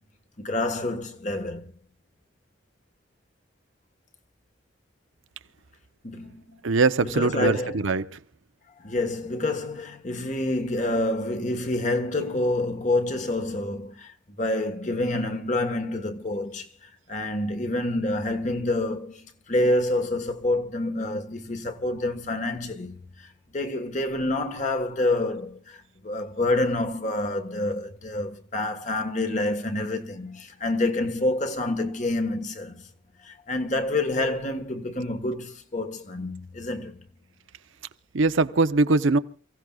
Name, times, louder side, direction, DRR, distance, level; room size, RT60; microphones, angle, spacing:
voice 1, 0.4-1.7 6.0-6.6 7.0-7.8 8.8-32.8 33.2-37.0, left 2 dB, 35° left, 1.4 m, -28 dB
voice 2, 6.6-8.2 38.1-39.2, right 3 dB, 80° right, 0.8 m, -22 dB
29.0 x 16.0 x 2.3 m
head